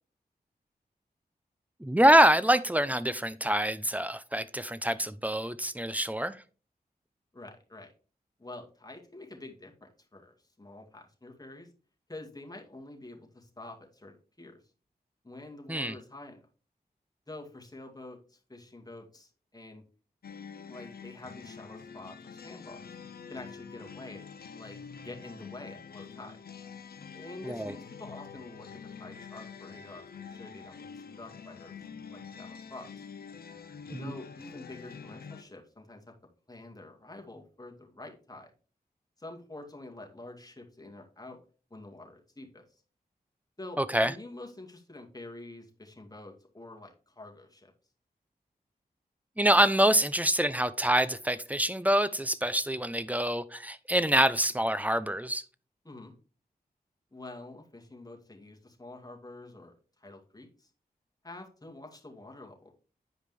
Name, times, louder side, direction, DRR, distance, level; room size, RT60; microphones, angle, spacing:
voice 1, 1.8-6.4 15.7-15.9 27.4-27.7 33.9-34.1 43.8-44.1 49.4-55.4, right 1 dB, 10° right, 0.6 m, -25 dB
voice 2, 7.3-7.9 8.4-11.7 12.1-14.6 15.2-16.5 17.3-19.8 20.7-23.0 23.3-24.8 25.0-26.4 27.1-31.8 32.1-32.9 33.9-36.0 36.5-38.5 39.2-41.4 41.7-42.6 43.6-47.7 55.8-56.1 57.1-60.7 61.2-62.8, left 2 dB, 25° left, 2.2 m, -47 dB
sound 1, 20.2-35.4, left 6 dB, 75° left, 0.7 m, -46 dB
9.4 x 5.0 x 3.4 m
cardioid pair, 45°, 16 cm